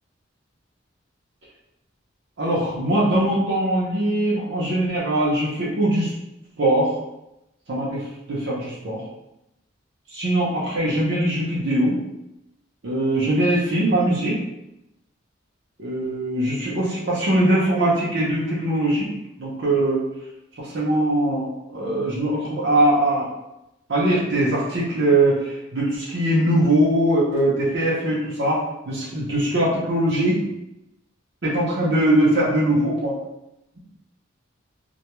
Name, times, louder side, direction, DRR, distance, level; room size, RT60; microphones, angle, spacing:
voice 1, 2.4-6.1 6.6-6.9 7.7-9.0 10.1-12.0 12.8-14.4 15.8-19.1 19.4-20.0 20.6-23.3 23.9-30.5 31.4-33.1, right 1 dB, 65° right, -7 dB, 0.6 m, -21 dB
2.2 x 2.2 x 2.9 m, 0.87 s
head